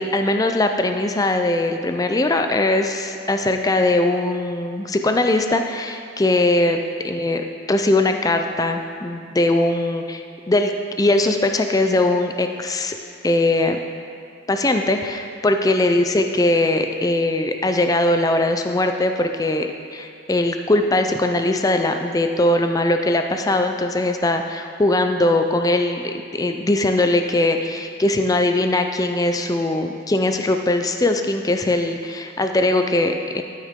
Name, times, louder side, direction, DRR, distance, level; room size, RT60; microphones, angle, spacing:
voice 1, 0.0-10.7 11.0-12.9 13.2-13.8 14.5-33.4, left 2 dB, 20° left, 6 dB, 0.4 m, -20 dB
12.5 x 6.5 x 3.7 m, 2.5 s
head